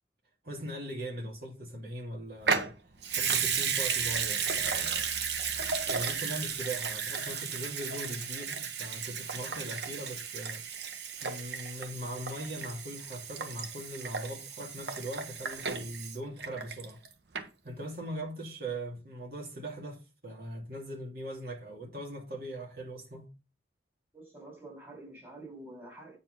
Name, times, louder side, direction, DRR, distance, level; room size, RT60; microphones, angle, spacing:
voice 1, 0.4-2.7 3.1-5.1 5.9-10.6 11.2-17.0 17.6-23.3, right 1 dB, 55° right, 2.7 m, -40 dB
Water tap faucet / Sink (filling or washing) / Liquid, 2.4-17.1 17.3-17.4, right 6 dB, 70° right, 1.0 m, -34 dB
voice 2, 24.1-26.2, right 2 dB, 15° right, 4.2 m, -47 dB
9.0 x 4.5 x 5.5 m
head